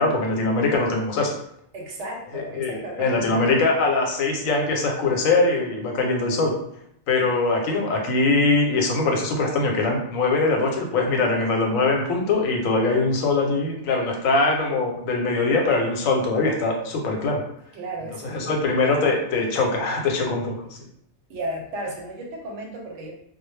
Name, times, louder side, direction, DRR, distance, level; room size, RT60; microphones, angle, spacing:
voice 1, 0.0-1.3 2.3-6.5 7.1-17.4 18.2-20.5, left 3 dB, 90° left, 1 dB, 1.0 m, -22 dB
voice 2, 1.7-3.5 17.7-18.7 21.3-23.1, right 1 dB, 70° right, 0 dB, 0.9 m, -34 dB
2.3 x 2.0 x 3.1 m, 0.72 s
omnidirectional pair, 1.3 m